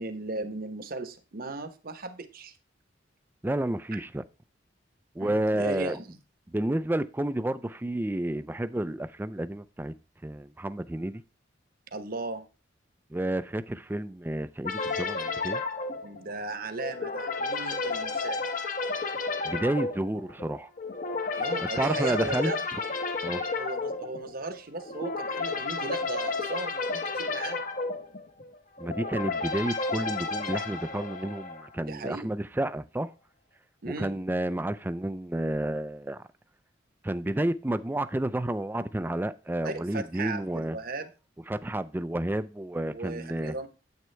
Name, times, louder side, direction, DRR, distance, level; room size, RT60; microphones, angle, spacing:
voice 1, 0.0-2.5 5.2-6.2 11.9-12.5 16.0-18.4 21.3-22.6 23.6-27.7 31.9-32.3 33.8-34.1 39.6-41.1 42.9-43.7, right 3 dB, 50° right, 1.0 m, -36 dB
voice 2, 3.4-4.2 5.2-6.0 6.5-9.9 10.2-11.2 13.1-15.6 19.4-20.7 21.8-22.5 23.2-23.4 28.8-33.1 33.9-36.2 37.0-40.8 41.5-43.5, right 1 dB, 10° right, 0.4 m, -30 dB
sound 1, 14.6-31.8, left 3 dB, 45° left, 1.0 m, -32 dB
9.3 x 8.0 x 3.3 m
head